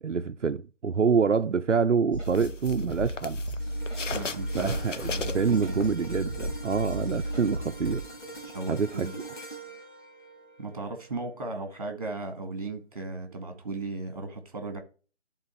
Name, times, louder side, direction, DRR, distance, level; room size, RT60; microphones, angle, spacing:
voice 1, 0.0-3.5 4.5-8.0 8.7-9.1, right 5 dB, 75° right, 0.7 m, -26 dB
sound 1, 2.1-8.0, right 1 dB, 10° left, 1.0 m, -34 dB
sound 2, 2.2-6.4 6.8-9.1, left 5 dB, 85° left, 0.8 m, -39 dB
sound 3, 3.6-11.9 12.4-12.6, right 2 dB, 40° left, 2.0 m, -44 dB
voice 2, 4.1-4.7 5.1-5.8 8.5-9.2 10.6-14.8, right 3 dB, 30° right, 2.2 m, -36 dB
11.0 x 4.1 x 4.6 m
figure-of-eight pair, 165°, 36 cm